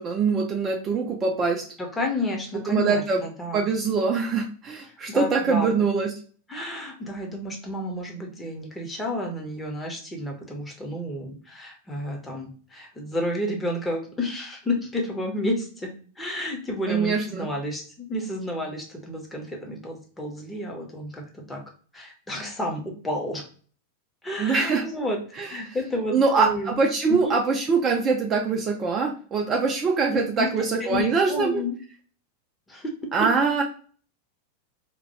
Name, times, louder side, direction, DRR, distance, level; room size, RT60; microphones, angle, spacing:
voice 1, 0.0-1.6 2.7-3.2 3.5-6.1 16.9-17.5 24.4-24.9 25.4-25.5 26.1-31.6 33.1-33.6, right 4 dB, 25° right, 1 dB, 0.4 m, -23 dB
voice 2, 1.8-3.7 5.1-5.9 6.5-15.9 16.2-21.6 21.9-23.4 24.2-25.2 25.5-26.7 27.1-27.4 30.1-30.5 30.8-31.7 32.7-32.9, left 1 dB, 10° left, 0 dB, 0.7 m, -31 dB
2.2 x 2.1 x 2.8 m, 0.42 s
figure-of-eight pair, 90°, 0 cm